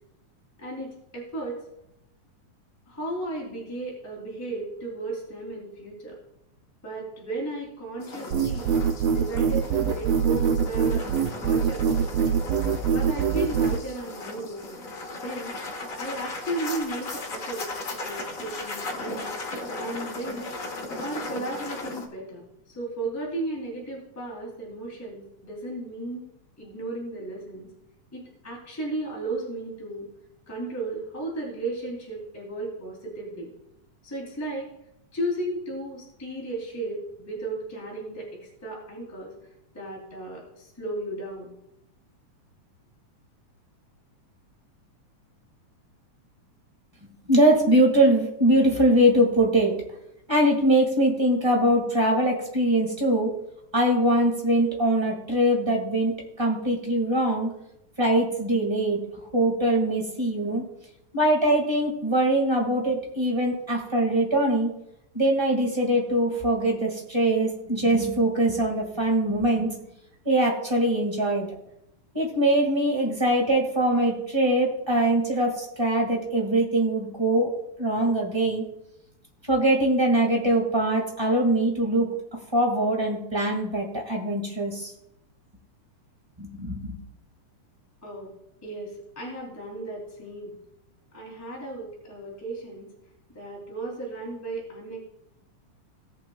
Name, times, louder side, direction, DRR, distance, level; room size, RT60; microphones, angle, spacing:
voice 1, 0.6-1.6 2.9-6.2 6.8-8.8 9.1-11.0 11.4-11.9 12.9-14.8 15.1-15.5 16.0-17.7 18.0-19.3 19.8-20.5 21.0-26.3 26.6-27.7 28.1-30.1 30.5-33.5 34.0-34.7 35.1-38.3 38.6-39.3 39.7-41.5 88.0-88.3 88.6-90.5 91.1-92.9 93.3-95.0, right 2 dB, 5° left, -4 dB, 2.4 m, -34 dB
sound 1, 8.0-22.1, left 2 dB, 75° left, 0.7 m, -36 dB
sound 2, 8.3-13.8, right 7 dB, 85° right, 1.4 m, -23 dB
voice 2, 47.3-49.7 50.3-53.3 53.7-56.1 56.4-57.5 58.0-60.6 61.1-64.7 65.1-69.8 70.2-71.5 72.1-77.5 77.8-78.6 79.5-82.2 82.5-84.9 86.4-87.0, right 1 dB, 15° right, 0 dB, 1.1 m, -22 dB
18.0 x 7.6 x 2.3 m, 0.81 s
omnidirectional pair, 3.6 m